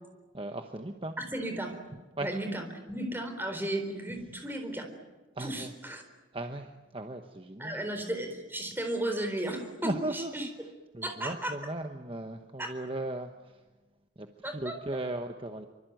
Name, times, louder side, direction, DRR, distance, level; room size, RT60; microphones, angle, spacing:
voice 1, 0.3-1.2 2.2-2.3 5.4-5.7 6.3-7.8 9.8-10.5 10.9-13.6 14.2-14.3 14.5-15.7, right 1 dB, 25° right, 6 dB, 1.1 m, -37 dB
voice 2, 1.2-1.8 2.2-4.9 5.4-6.0 7.6-10.5 11.0-11.6 12.6-12.7 14.4-14.8, right 1 dB, 10° right, 5 dB, 4.0 m, -34 dB
25.0 x 25.0 x 9.3 m, 1.2 s
head